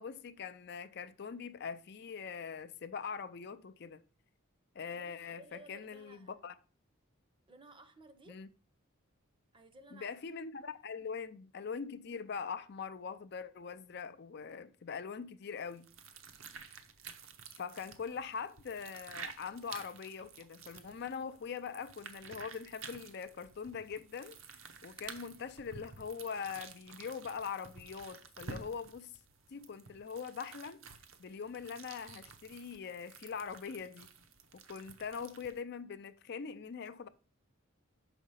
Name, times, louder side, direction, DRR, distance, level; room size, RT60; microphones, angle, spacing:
voice 1, 0.0-4.0 4.7-6.5 8.3-8.5 9.9-15.9 17.6-24.4 24.8-29.1 29.5-30.8 31.2-34.1 34.5-37.1, left 6 dB, 50° left, 0.5 m, -42 dB
voice 2, 4.8-6.3 7.5-8.4 9.5-10.3, right 1 dB, 25° right, 0.7 m, -57 dB
sound 1, 15.6-35.6, right 5 dB, 70° right, 0.9 m, -52 dB
6.3 x 5.0 x 5.6 m
head